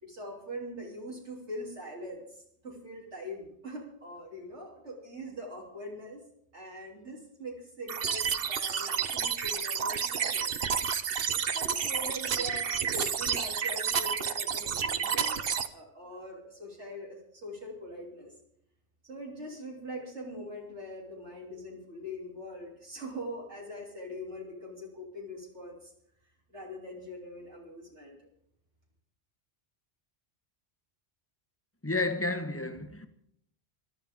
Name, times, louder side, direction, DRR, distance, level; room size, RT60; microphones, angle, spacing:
voice 1, 0.0-6.2 6.5-10.5 11.3-18.3 19.0-25.9 26.5-28.2, equal, 80° right, 3.7 m, -42 dB
sound 1, 7.9-15.7, right 7 dB, 60° right, 1.0 m, -30 dB
voice 2, 31.8-33.1, left 2 dB, 10° left, 1.2 m, -31 dB
23.0 x 12.5 x 3.7 m
omnidirectional pair, 1.2 m